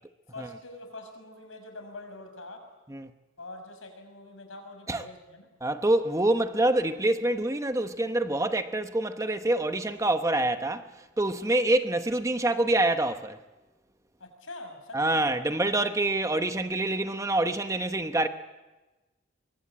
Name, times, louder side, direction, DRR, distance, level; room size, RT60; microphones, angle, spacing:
voice 1, 0.3-2.6 3.4-5.5 14.2-15.3, left 2 dB, 80° left, 6.0 m, -44 dB
voice 2, 5.6-10.8 11.2-13.4 14.9-18.3, right 2 dB, 15° right, 0.9 m, -26 dB
24.0 x 23.0 x 8.7 m
head